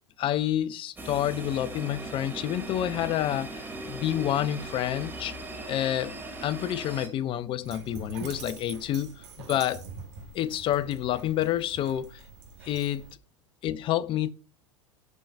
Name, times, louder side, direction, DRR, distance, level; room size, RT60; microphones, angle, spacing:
voice 1, 0.2-5.4 5.7-9.8 10.3-12.2 12.6-13.0 13.6-14.3, left 12 dB, 35° left, 0.5 m, -29 dB
sound 1, 1.0-7.1, right 2 dB, 10° right, 2.0 m, -39 dB
Dog, 7.6-13.1, right 5 dB, 65° right, 1.5 m, -44 dB
11.0 x 3.8 x 2.3 m
figure-of-eight pair, 85°, 16 cm